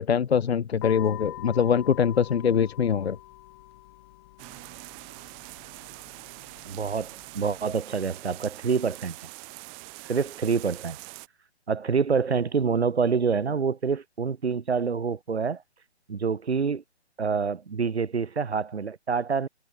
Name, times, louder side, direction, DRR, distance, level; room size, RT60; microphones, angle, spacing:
voice 1, 0.0-3.2, left 7 dB, 65° left, 0.7 m, -23 dB
sound 1, 0.8-7.8, left 17 dB, 20° left, 4.6 m, -45 dB
sound 2, 4.4-11.3, right 36 dB, 15° right, 3.3 m, -44 dB
voice 2, 6.7-9.2 10.0-11.0 11.7-15.6 16.1-16.8 17.2-19.5, right 5 dB, 65° right, 1.9 m, -26 dB
figure-of-eight pair, 155°, 34 cm